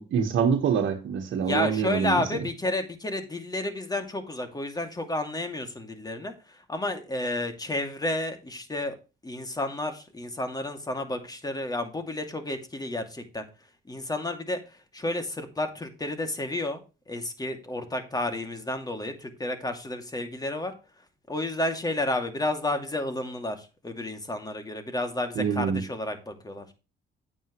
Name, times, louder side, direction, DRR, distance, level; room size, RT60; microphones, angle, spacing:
voice 1, 0.0-2.1 25.4-25.8, right 7 dB, 70° right, 3 dB, 1.5 m, -25 dB
voice 2, 1.3-9.0 9.2-13.4 13.9-16.8 17.1-20.7 21.3-26.7, left 2 dB, 20° left, 7 dB, 2.4 m, -31 dB
9.2 x 8.9 x 3.1 m, 0.30 s
cardioid pair, 90°, 20 cm